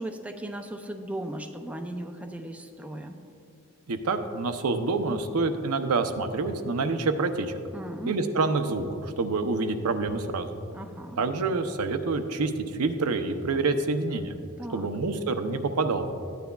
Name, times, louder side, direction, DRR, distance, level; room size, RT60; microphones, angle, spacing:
voice 1, 0.0-3.2 7.7-8.2 10.7-11.2 14.6-14.9, right 1 dB, 5° right, 4 dB, 0.4 m, -37 dB
voice 2, 3.9-7.6 8.1-10.6 11.2-14.4 14.7-16.1, right 3 dB, 85° right, 7 dB, 0.6 m, -27 dB
13.5 x 9.3 x 2.3 m, 2.5 s
head